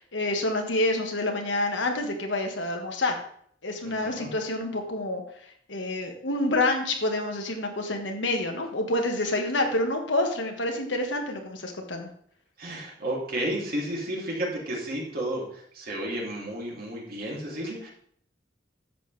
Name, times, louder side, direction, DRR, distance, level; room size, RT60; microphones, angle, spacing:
voice 1, 0.0-3.1 3.6-5.2 5.7-12.1, left 2 dB, 80° left, 3 dB, 1.7 m, -28 dB
voice 2, 3.8-4.3 12.6-17.9, right 1 dB, 55° right, -3 dB, 3.1 m, -32 dB
11.0 x 7.8 x 3.4 m, 0.64 s
head